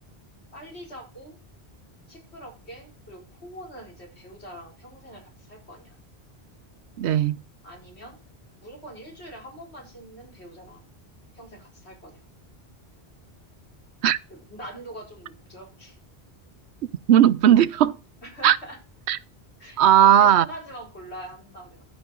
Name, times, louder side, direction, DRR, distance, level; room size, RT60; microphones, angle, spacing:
voice 1, 0.5-1.4 2.1-6.0 7.6-8.2 8.5-10.9 11.3-12.2 14.3-16.0 18.2-18.8 19.6-21.8, right 1 dB, 90° left, 4.7 m, -43 dB
voice 2, 7.0-7.4 14.0-14.2 17.1-18.0 18.4-18.6 19.1-19.2 19.8-20.5, right 10 dB, 85° right, 0.9 m, -17 dB
13.0 x 5.7 x 4.6 m
omnidirectional pair, 1.1 m